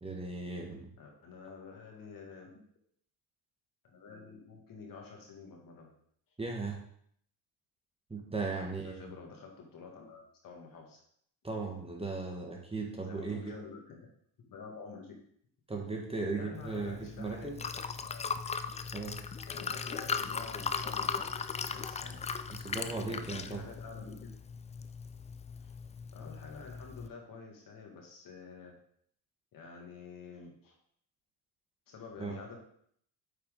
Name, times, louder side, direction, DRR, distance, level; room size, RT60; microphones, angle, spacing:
voice 1, 0.0-0.9 6.4-6.8 8.1-9.0 11.4-13.5 15.7-17.6 18.9-19.2 22.5-23.6 32.2-32.4, right 3 dB, 15° right, 0 dB, 1.4 m, -37 dB
voice 2, 1.0-2.6 3.9-5.9 8.6-11.0 13.0-14.1 14.4-15.2 16.3-18.3 19.5-22.2 22.8-24.3 25.6-25.7 26.1-28.7 29.5-30.8 31.9-32.6, left 5 dB, 50° left, 1 dB, 2.1 m, -49 dB
Liquid, 16.5-27.1, left 5 dB, 20° left, 0.3 m, -38 dB
8.5 x 4.5 x 3.8 m, 0.66 s
cardioid pair, 95°, 42 cm